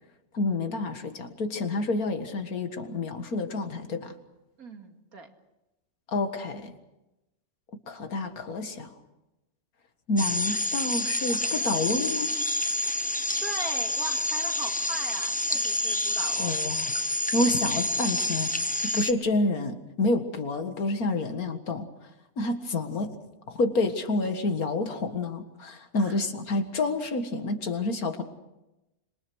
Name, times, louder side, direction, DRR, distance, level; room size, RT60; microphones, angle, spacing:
voice 1, 0.3-4.2 6.1-6.8 7.9-8.9 10.1-12.3 16.4-16.9 17.3-18.5 18.8-21.9 22.4-23.1 23.5-28.2, left 2 dB, 85° left, 7 dB, 2.3 m, -28 dB
voice 2, 4.6-5.3 13.4-16.6 26.0-26.2, right 3 dB, 85° right, 4 dB, 2.7 m, -40 dB
sound 1, 10.2-19.1, left 1 dB, 10° left, 0.6 m, -28 dB
26.0 x 22.5 x 6.3 m, 0.98 s
omnidirectional pair, 1.5 m